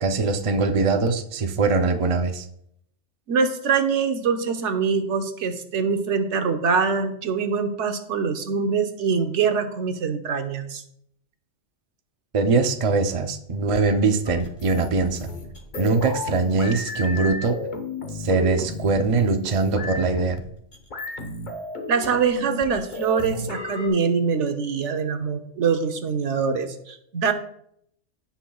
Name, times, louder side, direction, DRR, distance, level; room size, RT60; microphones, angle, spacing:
voice 1, 0.0-2.5 12.3-15.3 15.7-17.6 18.2-20.4, right 3 dB, 35° right, 6 dB, 0.6 m, -22 dB
voice 2, 3.3-10.8 21.9-27.3, right 5 dB, 85° right, 7 dB, 1.2 m, -24 dB
sound 1, 14.3-23.9, left 2 dB, 40° left, 1.3 m, -34 dB
16.5 x 5.8 x 2.3 m, 0.70 s
omnidirectional pair, 1.2 m